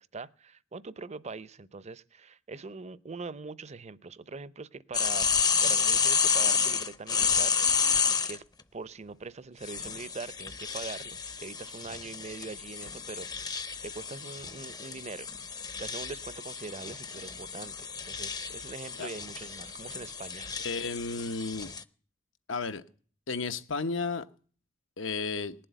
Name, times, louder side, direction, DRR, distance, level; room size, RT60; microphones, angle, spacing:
voice 1, 0.0-5.3 5.6-7.6 8.2-8.4 8.7-15.3 15.8-20.5, right 4 dB, 35° right, 0.6 m, -42 dB
sound 1, 4.9-8.4 9.6-21.8, left 6 dB, 20° left, 0.6 m, -30 dB
voice 2, 20.6-21.7 22.5-22.8 23.3-24.2 25.0-25.5, left 4 dB, 80° left, 1.0 m, -33 dB
19.5 x 7.7 x 9.2 m
head